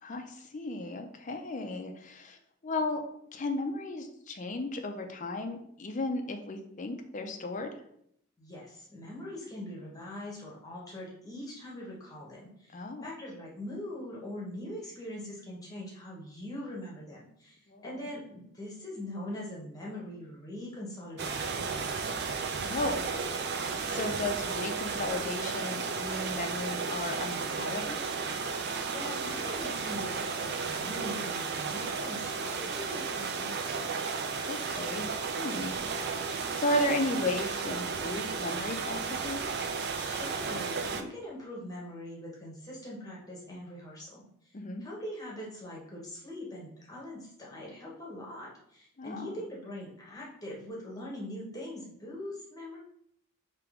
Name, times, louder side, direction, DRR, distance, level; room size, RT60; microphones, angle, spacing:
voice 1, 0.0-3.0 3.3-7.7 12.7-13.1 17.7-18.0 22.6-23.6 23.9-28.1 34.4-35.1 35.4-39.4 44.5-44.8 49.0-49.4, left 1 dB, 35° left, 5 dB, 0.5 m, -35 dB
voice 2, 8.4-21.5 28.9-33.5 40.0-44.2 44.4-44.5 44.8-52.8, left 1 dB, 15° left, -4 dB, 0.9 m, -42 dB
sound 1, 21.2-41.0, right 5 dB, 50° right, 0.4 m, -34 dB
3.6 x 2.9 x 4.7 m, 0.71 s
head